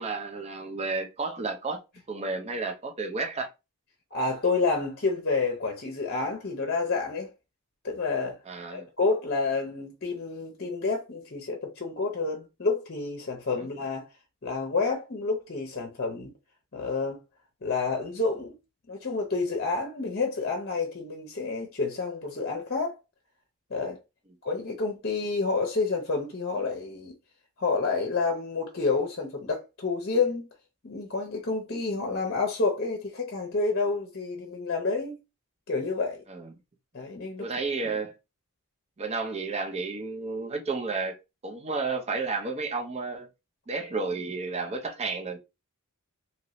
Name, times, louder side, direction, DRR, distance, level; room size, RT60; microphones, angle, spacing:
voice 1, 0.0-1.8 2.1-3.5 8.5-8.9 13.5-13.7 36.3-36.5 37.4-38.1 39.0-41.2 41.4-43.3 43.7-45.4, right 4 dB, 30° right, 0.6 m, -32 dB
voice 2, 4.1-7.3 7.8-8.4 8.7-14.1 14.4-16.3 16.7-17.2 17.6-18.6 18.9-22.9 23.7-24.0 24.4-27.2 27.6-30.5 30.8-35.2 35.7-36.2 36.9-37.4, left 4 dB, 45° left, 0.7 m, -29 dB
2.9 x 2.6 x 3.0 m
head